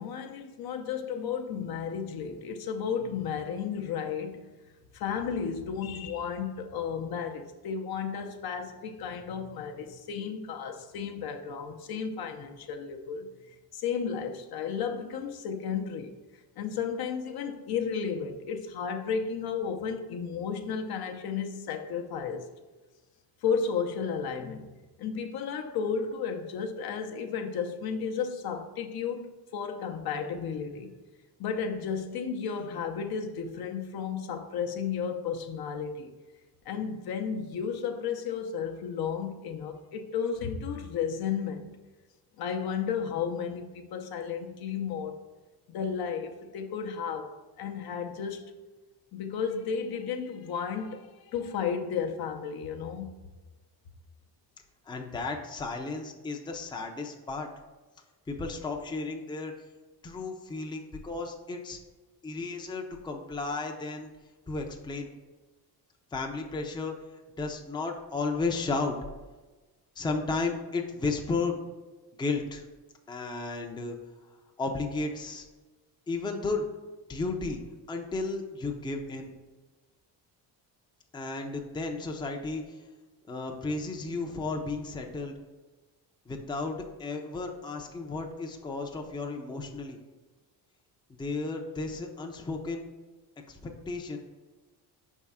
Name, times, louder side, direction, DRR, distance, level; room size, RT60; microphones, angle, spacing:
voice 1, 0.0-4.5 4.9-16.1 16.6-22.5 23.4-24.7 25.0-30.9 31.4-36.1 36.7-41.8 42.4-45.2 45.7-48.5 49.1-53.1, left 6 dB, 60° left, 0.7 m, -33 dB
voice 2, 54.9-57.5 58.3-59.5 60.0-61.8 62.2-64.1 64.5-65.1 66.1-66.9 67.4-69.0 70.0-71.6 72.2-72.6 73.1-74.0 74.6-75.5 76.1-76.7 77.1-77.6 77.9-79.3 81.1-82.8 83.3-85.3 86.3-90.0 91.1-92.8 93.5-94.2, left 3 dB, 10° left, 0.5 m, -33 dB
5.4 x 3.6 x 5.5 m
cardioid pair, 125°, 41 cm